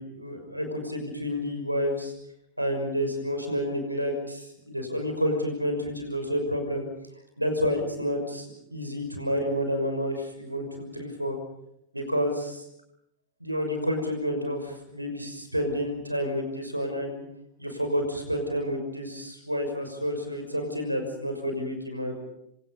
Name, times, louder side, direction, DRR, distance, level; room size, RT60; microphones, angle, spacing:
voice 1, 0.0-2.1 2.6-6.9 7.4-11.4 11.9-12.6 13.4-17.2 17.6-22.1, equal, 85° right, 5 dB, 6.2 m, -29 dB
28.0 x 26.0 x 5.6 m, 0.77 s
figure-of-eight pair, 90°, 0 cm